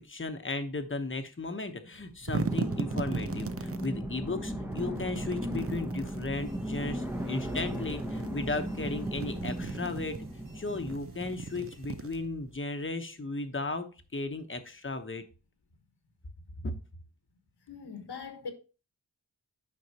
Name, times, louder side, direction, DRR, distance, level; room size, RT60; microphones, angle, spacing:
voice 1, 0.0-10.2 10.5-13.9 14.1-15.2 16.6-16.7, left 3 dB, 30° left, 1.0 m, -35 dB
sound 1, 1.9-3.9 4.7-6.3 7.2-8.3 8.7-10.2 10.8-12.6, right 4 dB, 35° right, 0.6 m, -37 dB
sound 2, 2.4-11.0, equal, 5° right, 0.8 m, -36 dB
sound 3, 6.3-12.2, right 4 dB, 55° right, 1.9 m, -58 dB
voice 2, 17.7-18.5, left 5 dB, 85° left, 1.5 m, -41 dB
9.5 x 5.7 x 2.9 m
wide cardioid pair, 110°, 39 cm